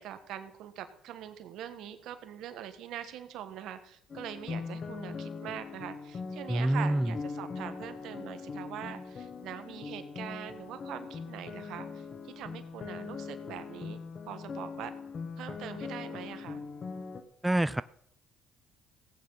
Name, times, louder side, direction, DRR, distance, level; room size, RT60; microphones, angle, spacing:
voice 1, 0.0-14.0 14.3-14.9 15.4-16.6, right 10 dB, 75° right, 10 dB, 1.5 m, -43 dB
sound 1, 4.1-17.2, left 5 dB, 45° left, 1.7 m, -41 dB
voice 2, 6.5-7.1 17.4-17.8, right 1 dB, 10° right, 15 dB, 0.4 m, -26 dB
16.5 x 8.9 x 5.7 m, 0.69 s
supercardioid pair, 80°, 0 cm